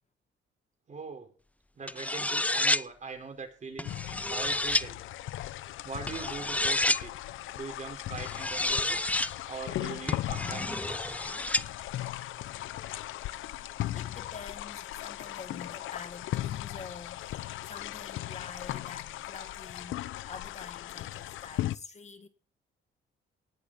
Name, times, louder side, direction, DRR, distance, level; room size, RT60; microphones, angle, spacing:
voice 1, 0.9-1.3 1.7-4.0 4.3-5.0 5.8-7.1 7.5-9.0 9.5-11.3, right 4 dB, 40° right, 4.6 m, -41 dB
sound 1, 1.9-2.8 3.8-4.8 6.1-7.0 8.2-9.3 10.1-11.6, left 2 dB, 5° left, 0.4 m, -29 dB
sound 2, 3.8-21.8, left 14 dB, 80° left, 0.7 m, -38 dB
voice 2, 13.9-22.3, left 5 dB, 35° left, 1.3 m, -47 dB
19.0 x 6.6 x 4.2 m
cardioid pair, 90°, 20 cm